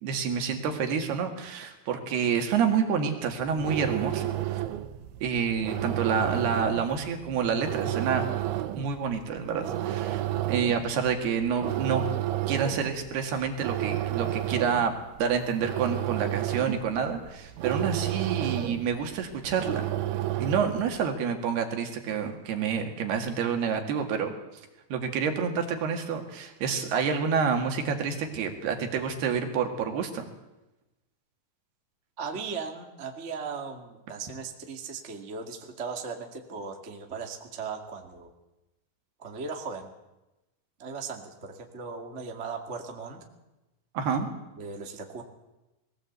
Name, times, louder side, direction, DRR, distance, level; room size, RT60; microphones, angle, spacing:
voice 1, 0.0-4.3 5.2-8.3 8.8-12.0 12.5-14.9 15.2-19.8 20.4-24.3 24.9-30.3 43.9-44.3, right 6 dB, 65° right, 5 dB, 3.8 m, -28 dB
sound 1, 3.4-21.0, right 13 dB, 90° right, 3.4 m, -32 dB
voice 2, 32.2-38.3 39.2-39.9 40.8-43.2 44.6-45.2, right 5 dB, 35° right, 2 dB, 1.1 m, -37 dB
21.0 x 17.0 x 8.2 m, 1.0 s
omnidirectional pair, 5.2 m